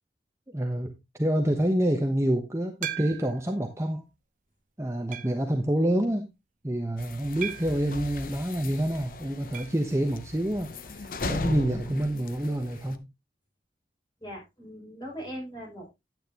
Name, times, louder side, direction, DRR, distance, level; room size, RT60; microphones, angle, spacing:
voice 1, 0.5-0.9 1.2-4.0 4.8-6.3 6.6-13.0, right 1 dB, 15° right, 3 dB, 1.0 m, -27 dB
sound 1, 2.8-3.5 4.1-4.2 5.1-5.5 7.4-7.9 9.5-9.8 10.1-10.2 10.5-10.6 12.6-12.7, right 10 dB, 45° right, 0.7 m, -37 dB
sound 2, 7.0-13.0, left 3 dB, 50° left, 0.8 m, -37 dB
voice 2, 14.2-15.9, equal, 25° left, -2 dB, 6.4 m, -40 dB
10.0 x 9.1 x 2.9 m, 0.22 s
head